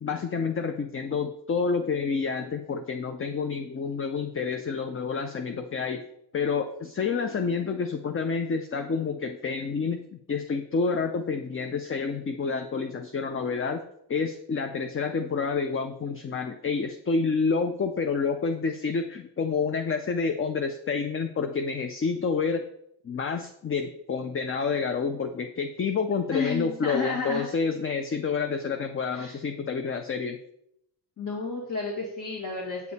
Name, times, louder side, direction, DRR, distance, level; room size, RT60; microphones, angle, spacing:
voice 1, 0.0-6.0 6.3-13.8 14.1-22.6 23.0-30.4, left 5 dB, 30° left, 7 dB, 0.5 m, -28 dB
voice 2, 26.3-27.5 29.1-29.4 31.2-32.9, left 4 dB, 50° left, -3 dB, 1.9 m, -31 dB
8.2 x 6.8 x 4.1 m, 0.76 s
wide cardioid pair, 125°, 41 cm